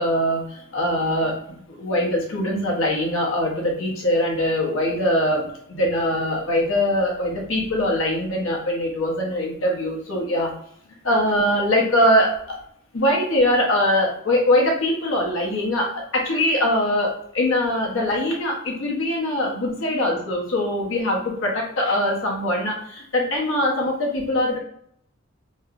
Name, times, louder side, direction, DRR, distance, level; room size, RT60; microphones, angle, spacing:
voice 1, 0.0-10.5 11.0-12.6 12.9-24.6, left 1 dB, 70° left, -2 dB, 0.9 m, -22 dB
3.0 x 2.8 x 2.5 m, 0.69 s
head